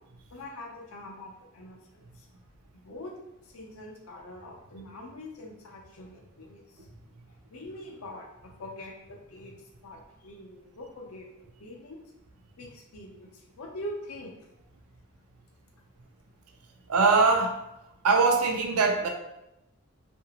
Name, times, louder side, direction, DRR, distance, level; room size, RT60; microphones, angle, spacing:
voice 1, 0.3-2.3 2.7-3.1 3.4-6.9 7.3-9.6 9.8-12.0 12.6-14.4, left 1 dB, 70° left, 0 dB, 0.6 m, -44 dB
voice 2, 16.9-17.6 18.0-19.1, right 4 dB, 85° right, 3 dB, 0.5 m, -22 dB
2.8 x 2.5 x 2.9 m, 0.87 s
head